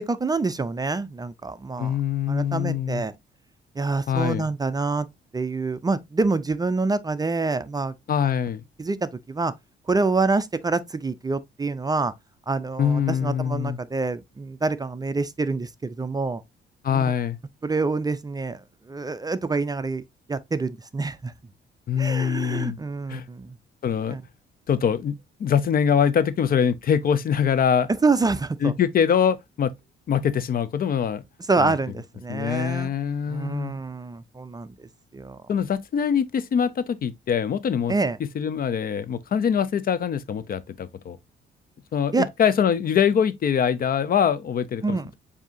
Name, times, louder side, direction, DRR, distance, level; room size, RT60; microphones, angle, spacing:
voice 1, 0.0-2.0 2.3-3.1 3.8-5.1 5.3-7.9 8.8-9.5 9.9-12.1 12.5-16.4 16.9-17.0 17.6-20.0 20.3-21.3 22.0-23.6 24.1-24.2 28.0-28.7 31.5-32.9 33.3-35.4 37.9-38.2 42.1-42.3 44.8-45.1, right 3 dB, 20° right, 0.4 m, -26 dB
voice 2, 1.8-3.0 4.1-4.5 8.1-8.6 12.8-13.8 16.8-17.4 21.9-22.8 23.1-23.3 23.8-24.2 24.7-27.9 28.6-29.7 30.1-31.2 31.6-31.7 32.3-33.7 35.5-37.9 38.3-41.2 41.9-45.2, left 8 dB, 50° left, 0.5 m, -23 dB
7.2 x 2.7 x 2.6 m
cardioid pair, 90°, 20 cm